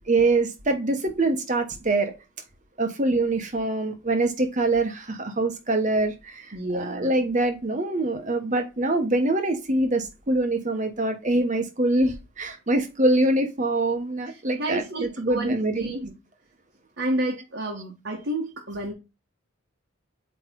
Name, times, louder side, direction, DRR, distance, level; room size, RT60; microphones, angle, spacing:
voice 1, 0.1-2.2 2.8-15.9, right 2 dB, 35° right, 1.2 m, -24 dB
voice 2, 6.5-7.3 14.3-16.1 17.0-18.9, right 1 dB, 50° right, 1.3 m, -30 dB
8.3 x 3.3 x 3.6 m
head